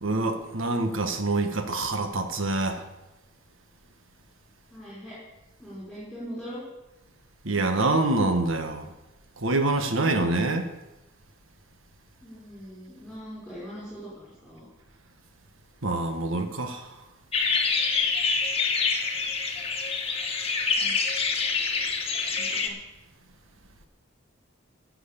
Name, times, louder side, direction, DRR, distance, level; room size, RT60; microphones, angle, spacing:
voice 1, 0.0-2.8 7.4-8.9 9.4-10.7 15.8-16.9, right 2 dB, 70° right, 7 dB, 1.5 m, -26 dB
voice 2, 4.7-5.1 5.6-6.6 12.2-14.7 20.8-20.9 22.3-22.7, equal, ahead, -11 dB, 5.8 m, -41 dB
sound 1, 17.3-22.7, left 5 dB, 30° left, 1.4 m, -26 dB
14.5 x 7.8 x 6.8 m, 1.0 s
head